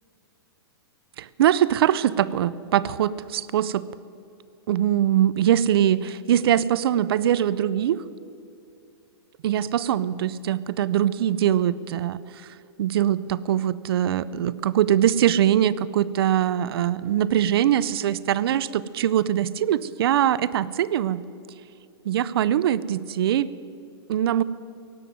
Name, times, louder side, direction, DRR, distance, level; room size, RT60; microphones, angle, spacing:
voice 1, 1.2-3.8 4.7-8.0 9.4-12.5 12.8-21.2 22.1-23.5 24.1-24.4, right 11 dB, 65° right, 18 dB, 0.5 m, -22 dB
16.5 x 9.4 x 9.3 m, 2.6 s
hypercardioid pair, 145°, 14 cm